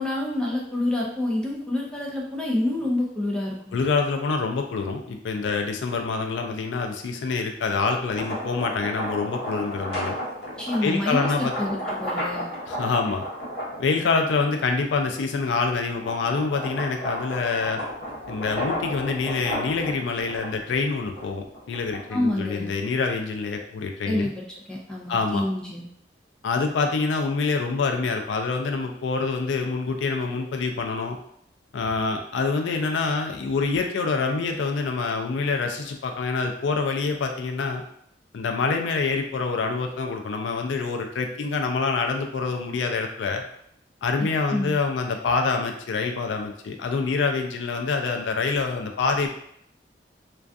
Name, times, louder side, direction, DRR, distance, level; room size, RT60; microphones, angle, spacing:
voice 1, 0.0-3.7 10.6-12.5 22.1-22.7 24.1-24.3 24.7-25.9 44.5-44.7, left 1 dB, 5° left, -3 dB, 0.4 m, -27 dB
voice 2, 3.7-10.2 10.8-11.5 12.7-13.2 13.8-17.8 18.3-24.3 25.1-25.4 26.4-31.2 31.7-37.8 38.3-43.4 44.0-49.3, left 4 dB, 90° left, 4 dB, 0.4 m, -26 dB
sound 1, 8.0-14.6 15.1-22.3, equal, 65° left, 0.8 m, -33 dB
2.3 x 2.3 x 2.5 m, 0.70 s
head